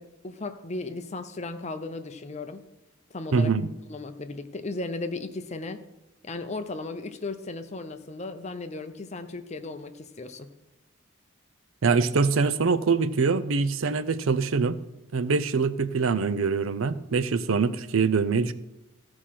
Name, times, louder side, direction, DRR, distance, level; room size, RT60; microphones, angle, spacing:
voice 1, 0.0-2.6 3.1-3.5 3.9-5.8 6.2-10.5, left 3 dB, 30° left, 9 dB, 0.6 m, -36 dB
voice 2, 3.3-3.7 11.8-14.8 15.1-18.5, right 4 dB, 70° right, 13 dB, 0.5 m, -24 dB
14.5 x 4.9 x 5.8 m, 0.96 s
head